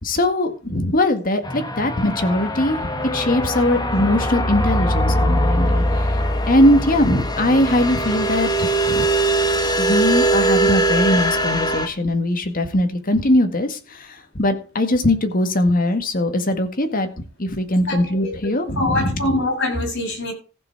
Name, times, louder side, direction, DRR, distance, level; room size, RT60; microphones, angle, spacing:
voice 1, 0.0-6.2 6.5-9.1 9.8-17.1 17.4-19.1, left 1 dB, 45° left, 7 dB, 1.9 m, -20 dB
sound 1, 1.4-11.9, right 1 dB, 20° left, 1.4 m, -21 dB
voice 2, 17.9-18.3 18.6-20.3, left 1 dB, 60° left, 0 dB, 7.5 m, -24 dB
15.0 x 7.1 x 4.6 m, 0.35 s
head